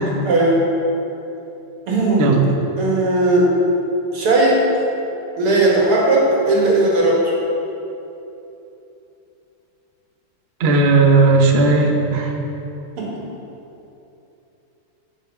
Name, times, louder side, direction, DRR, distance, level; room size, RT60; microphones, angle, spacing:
voice 1, 0.1-0.7 1.9-2.3 2.8-3.5 4.1-4.6 5.4-7.2 13.0-13.2, right 2 dB, 85° right, -3 dB, 2.8 m, -17 dB
voice 2, 10.6-12.3, right 3 dB, 50° right, 2 dB, 0.7 m, -15 dB
8.4 x 6.4 x 7.0 m, 2.9 s
omnidirectional pair, 2.4 m